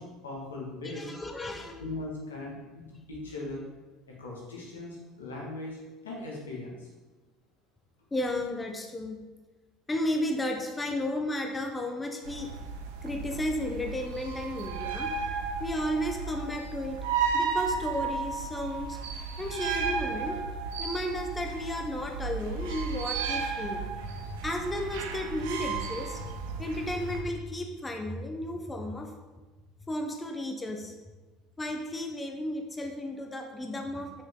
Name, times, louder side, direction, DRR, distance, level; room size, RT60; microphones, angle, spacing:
voice 1, 0.0-1.1 1.8-2.8 3.1-3.6 4.2-5.8 6.0-6.9, left 2 dB, 90° left, -3 dB, 2.1 m, -39 dB
voice 2, 0.8-1.8 2.9-3.0 8.1-9.2 9.9-12.5 13.0-15.1 15.6-17.0 17.3-19.0 19.4-20.4 20.8-29.1 29.9-30.9 31.6-34.2, left 1 dB, 15° left, 3 dB, 1.1 m, -33 dB
sound 1, 12.2-27.2, right 5 dB, 75° right, 0.9 m, -34 dB
7.0 x 6.5 x 3.8 m, 1.2 s
hypercardioid pair, 70°, 0 cm